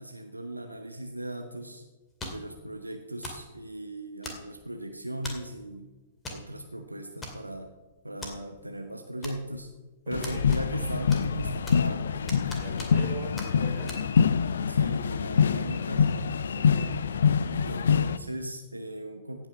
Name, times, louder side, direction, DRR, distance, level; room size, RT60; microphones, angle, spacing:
voice 1, 0.0-1.9 2.3-5.9 6.3-7.7 8.0-9.7 10.1-12.1 14.0-14.1 14.7-16.2 17.6-19.5, right 1 dB, 85° right, 5 dB, 1.0 m, -38 dB
sound 1, 2.2-2.5 3.2-3.5 4.2-4.7 5.2-5.5 6.2-6.4 6.7-6.8 7.2-7.7 8.2-8.3 9.2-9.7 10.2-10.8 11.1-11.9 12.3-13.1 13.4-13.5 13.9-14.0, left 2 dB, 15° left, 2.3 m, -40 dB
sound 2, 10.1-18.2, left 6 dB, 65° left, 0.5 m, -25 dB
voice 2, 10.1-10.5 12.5-14.0 16.6-17.4, right 4 dB, 35° right, 2 dB, 3.7 m, -42 dB
16.5 x 6.0 x 7.0 m, 1.2 s
figure-of-eight pair, 110°, 0 cm